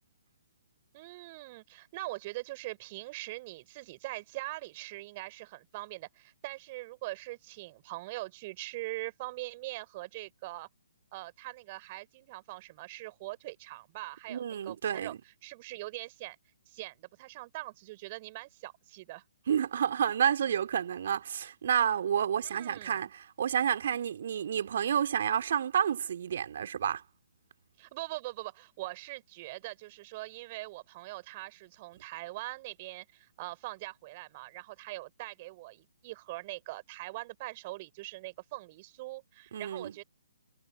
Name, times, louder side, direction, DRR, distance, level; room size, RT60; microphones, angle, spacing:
voice 1, 0.9-10.7 11.1-16.4 16.7-19.2 22.4-23.0 27.8-40.0, right 20 dB, 30° right, 3.9 m, -42 dB
voice 2, 14.3-15.2 19.5-27.0 39.5-39.9, right 8 dB, 50° right, 2.8 m, -30 dB
figure-of-eight pair, 130°, 0 cm